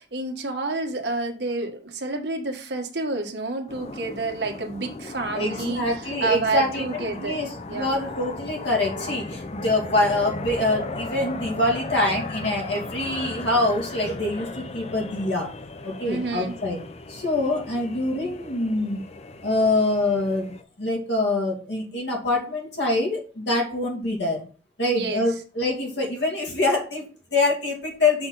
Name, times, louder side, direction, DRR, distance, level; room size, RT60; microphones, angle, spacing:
voice 1, 0.0-7.3 7.7-8.0 16.0-16.5 24.9-25.4, right 3 dB, 70° right, 3 dB, 1.5 m, -29 dB
sound 1, 3.7-20.6, left 3 dB, 35° left, 0.6 m, -37 dB
voice 2, 5.3-6.9 7.2-7.5 7.7-15.5 15.8-16.8 17.1-19.0 19.4-20.5 20.8-24.4 24.8-28.3, left 2 dB, 70° left, 0 dB, 2.5 m, -25 dB
6.5 x 6.0 x 3.9 m, 0.38 s
head